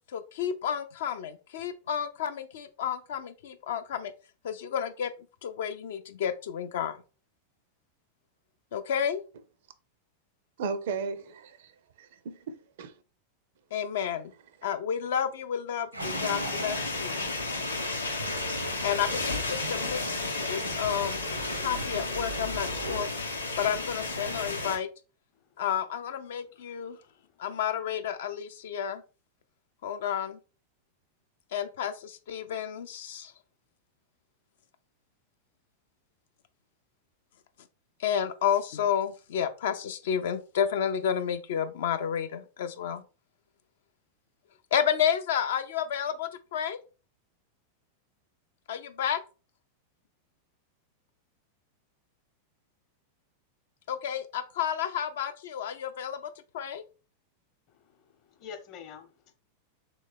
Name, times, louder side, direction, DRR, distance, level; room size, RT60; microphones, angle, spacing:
voice 1, 0.1-4.1 4.4-5.1 5.4-7.0 8.7-9.2 13.7-14.3 14.6-17.2 18.8-21.3 21.6-23.1 23.6-24.9 25.6-27.0 27.4-29.0 29.8-30.4 31.5-33.3 38.0-43.0 44.7-46.8 48.7-49.2 53.9-56.2 56.5-56.8, left 8 dB, 60° left, 0.4 m, -31 dB
voice 2, 10.6-13.0, right 5 dB, 55° right, 0.4 m, -36 dB
sound 1, 15.9-23.0, right 2 dB, 85° right, 0.7 m, -40 dB
sound 2, 16.0-24.8, left 3 dB, 85° left, 0.7 m, -33 dB
voice 3, 25.3-25.6 26.4-27.4 57.7-59.3, left 7 dB, 40° left, 0.8 m, -49 dB
3.3 x 3.1 x 3.4 m
figure-of-eight pair, 90°, 0 cm